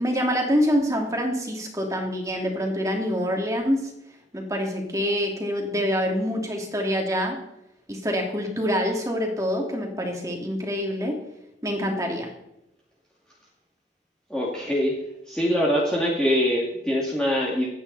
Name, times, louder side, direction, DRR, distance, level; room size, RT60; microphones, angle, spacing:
voice 1, 0.0-3.9 4.3-7.4 7.9-11.2 11.6-12.3, equal, 20° right, 1 dB, 2.7 m, -26 dB
voice 2, 14.3-15.0 15.3-17.7, equal, 5° left, -5 dB, 2.4 m, -23 dB
25.0 x 9.6 x 4.2 m, 0.84 s
head